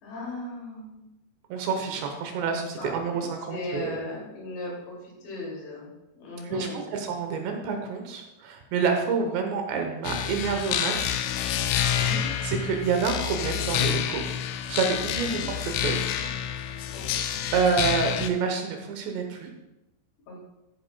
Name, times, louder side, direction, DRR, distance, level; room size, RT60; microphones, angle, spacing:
voice 1, 0.0-1.1 2.8-3.2 3.5-5.9 6.2-7.0 11.9-12.2 15.2-15.4 16.9-17.1 20.3-20.4, left 1 dB, 70° left, -3 dB, 4.8 m, -37 dB
voice 2, 1.5-4.0 6.4-11.2 12.4-14.2 14.7-16.0 17.5-19.5, right 5 dB, 75° right, 4 dB, 3.1 m, -28 dB
sound 1, 10.0-18.3, left 10 dB, 90° left, 3.1 m, -28 dB
14.0 x 8.5 x 2.3 m, 0.94 s
omnidirectional pair, 5.4 m